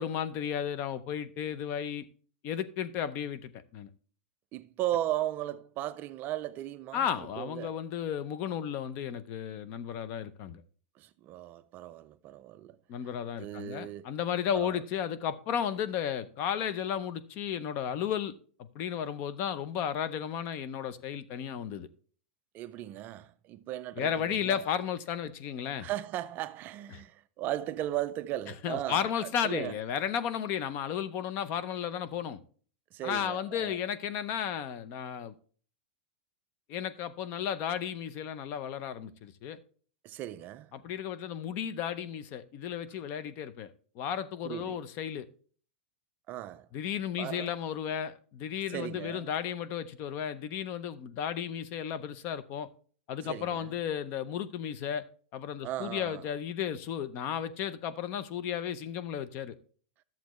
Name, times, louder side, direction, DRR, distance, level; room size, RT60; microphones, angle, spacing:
voice 1, 0.0-2.1 2.4-3.9 6.9-10.6 12.9-21.9 24.0-25.9 28.6-32.4 33.0-35.3 36.7-39.6 40.7-43.7 44.0-45.3 46.7-52.7 53.1-55.0 55.3-59.6, left 9 dB, 40° left, 0.6 m, -34 dB
voice 2, 4.5-7.1 7.4-7.7 11.0-12.8 13.4-14.1 14.5-14.8 22.5-24.6 25.8-29.8 32.9-33.8 40.0-40.7 44.4-44.8 46.3-46.7 47.2-47.5 48.7-49.3 53.2-53.7 55.6-56.3, right 13 dB, 30° right, 0.4 m, -37 dB
11.5 x 7.2 x 3.1 m
supercardioid pair, 150°, 6 cm